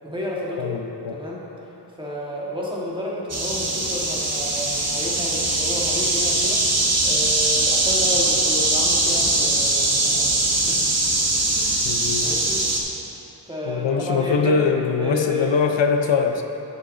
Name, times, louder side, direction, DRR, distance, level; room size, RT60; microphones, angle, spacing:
voice 1, 0.0-0.8 1.1-1.4 2.0-10.9 11.5-11.8 12.2-12.6 13.4-14.7 15.0-15.6, left 1 dB, 10° right, -5 dB, 1.7 m, -31 dB
voice 2, 0.6-1.1 11.8-12.3 13.7-16.4, left 5 dB, 90° left, 5 dB, 0.6 m, -22 dB
sound 1, 3.3-12.8, right 2 dB, 35° right, 1.1 m, -21 dB
10.5 x 6.4 x 3.8 m, 3.0 s
wide cardioid pair, 85°, 43 cm